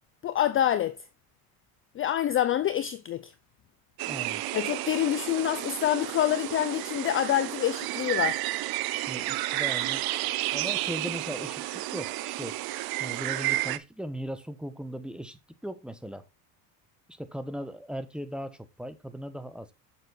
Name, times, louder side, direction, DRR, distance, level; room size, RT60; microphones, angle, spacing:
voice 1, 0.2-1.0 2.0-3.3 4.5-8.4, left 11 dB, 30° left, 0.5 m, -26 dB
sound 1, 4.0-13.8, right 17 dB, 55° right, 0.7 m, -31 dB
voice 2, 4.1-4.4 9.1-10.0 10.5-12.6 13.0-16.3 17.1-19.7, equal, ahead, 0.9 m, -38 dB
7.0 x 6.6 x 4.0 m
supercardioid pair, 105°, 45 cm